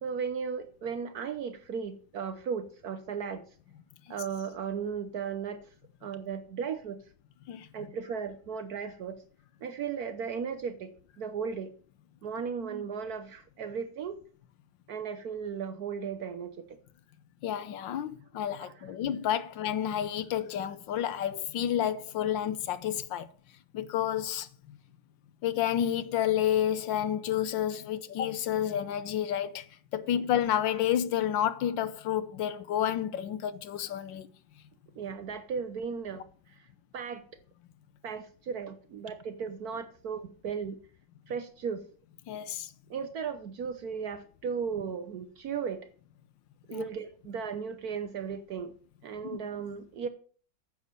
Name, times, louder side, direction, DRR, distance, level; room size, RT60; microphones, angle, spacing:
voice 1, 0.0-3.4 4.1-5.6 6.0-7.0 7.7-9.2 9.6-10.9 11.2-11.7 12.2-14.2 14.9-16.7 18.6-18.8 30.1-30.2 35.0-36.2 36.9-37.2 38.0-40.8 41.3-41.8 42.9-45.9 46.7-48.7 49.0-50.1, right 6 dB, 60° right, 1.1 m, -36 dB
voice 2, 17.4-23.3 23.7-24.5 25.4-29.6 29.9-34.3 42.3-42.7 46.7-46.8 49.2-49.4, left 10 dB, 70° left, 1.4 m, -30 dB
9.4 x 7.2 x 6.6 m
omnidirectional pair, 2.2 m